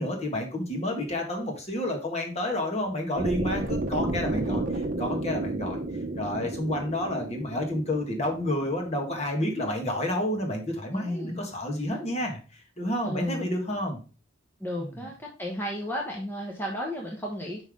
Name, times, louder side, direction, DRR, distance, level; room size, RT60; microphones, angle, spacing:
voice 1, 0.0-5.8 6.2-14.0 14.8-15.1, left 1 dB, 30° left, 2 dB, 1.7 m, -30 dB
sound 1, 3.2-9.3, right 2 dB, 40° right, 0.8 m, -32 dB
voice 2, 10.9-11.4 13.0-13.5 14.6-17.6, left 1 dB, 10° left, -1 dB, 1.0 m, -33 dB
5.8 x 5.4 x 3.7 m, 0.35 s
head